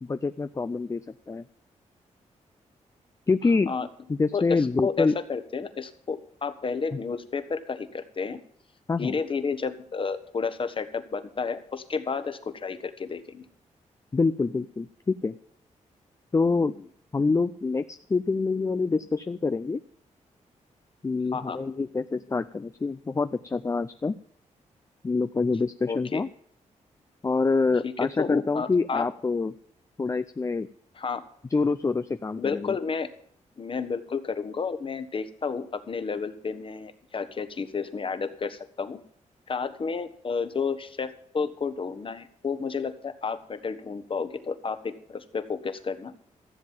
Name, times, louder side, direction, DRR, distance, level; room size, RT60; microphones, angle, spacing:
voice 1, 0.1-1.0 1.3-1.4 3.3-3.7 4.1-5.1 8.9-9.2 14.1-15.4 16.3-16.7 17.1-19.8 21.0-24.1 25.0-26.3 27.2-29.5 30.0-30.7 31.5-32.7, left 4 dB, 25° left, 11 dB, 0.5 m, -26 dB
voice 2, 4.3-8.4 9.0-13.4 21.3-21.6 25.8-26.2 27.8-29.1 31.0-31.2 32.4-33.1 33.6-39.0 39.5-46.1, left 5 dB, 40° left, 10 dB, 1.3 m, -31 dB
14.5 x 7.5 x 7.4 m, 0.63 s
cardioid pair, 90°, 13 cm